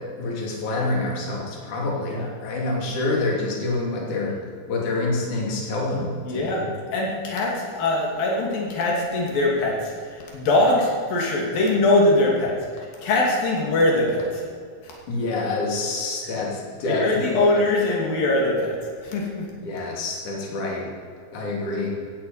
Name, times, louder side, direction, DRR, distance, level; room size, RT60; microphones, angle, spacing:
voice 1, 0.0-4.4 4.7-6.7 15.1-17.5 19.6-20.9 21.3-22.0, left 2 dB, 60° left, -3 dB, 4.4 m, -27 dB
voice 2, 6.3-12.5 13.0-14.4 14.8-14.9 16.9-18.7 19.0-19.5, left 2 dB, 90° left, -2 dB, 4.4 m, -22 dB
16.5 x 15.0 x 5.7 m, 2.1 s
omnidirectional pair, 3.9 m